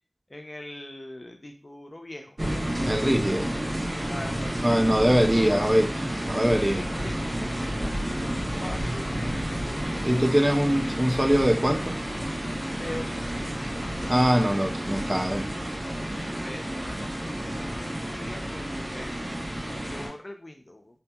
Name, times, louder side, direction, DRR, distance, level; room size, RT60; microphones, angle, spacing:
voice 1, 0.3-2.4 4.1-5.9 6.6-10.4 12.8-14.0 16.1-21.0, left 1 dB, 45° left, 4 dB, 0.5 m, -42 dB
sound 1, 2.4-20.1, equal, 55° right, 1.1 m, -31 dB
voice 2, 2.8-3.5 4.6-5.9 6.2-6.8 10.0-11.9 14.1-15.5, equal, 25° right, 5 dB, 0.4 m, -22 dB
2.8 x 2.6 x 2.3 m, 0.38 s
wide cardioid pair, 40°, 0 cm